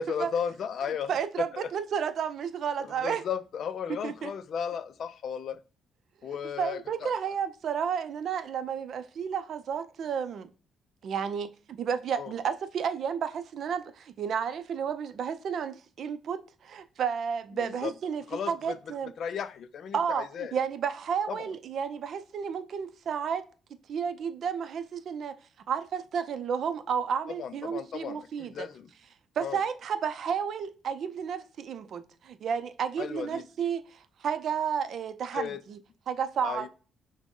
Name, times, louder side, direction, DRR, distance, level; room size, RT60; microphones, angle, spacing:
voice 1, 0.0-1.1 1.4-1.7 2.8-5.6 6.2-7.1 12.1-12.3 17.6-17.9 18.3-18.8 19.2-20.5 21.3-21.5 27.3-28.9 29.4-29.6 33.0-33.4 35.3-35.6 36.4-36.7, left 7 dB, 65° left, 0.4 m, -35 dB
voice 2, 1.1-3.2 4.0-4.3 6.2-10.5 11.0-19.1 19.9-23.5 23.9-25.4 25.7-28.7 29.4-35.8 36.1-36.7, right 7 dB, 65° right, 0.5 m, -32 dB
5.9 x 2.1 x 3.6 m
cardioid pair, 90°, 0 cm